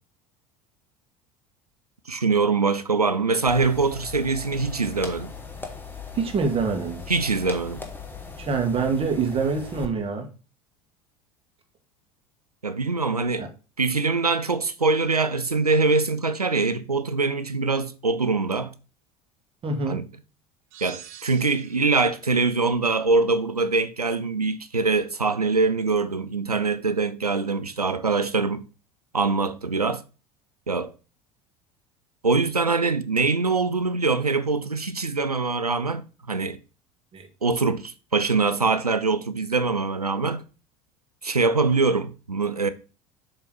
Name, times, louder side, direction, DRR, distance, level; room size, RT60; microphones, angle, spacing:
voice 1, 2.1-5.3 7.1-7.8 12.6-13.5 13.8-18.7 19.9-20.1 20.8-28.7 29.1-30.0 30.7-30.9 32.2-36.6 37.4-40.4 41.2-42.7, right 4 dB, 90° right, 0.4 m, -23 dB
sound 1, 3.5-9.8, left 4 dB, 10° left, 1.1 m, -39 dB
voice 2, 6.1-7.0 8.4-10.3 13.3-13.5 19.6-20.0 37.1-37.3, right 4 dB, 30° right, 1.4 m, -25 dB
sound 2, 20.7-22.1, right 12 dB, 55° right, 0.8 m, -45 dB
7.1 x 3.0 x 4.7 m
figure-of-eight pair, 70°, 19 cm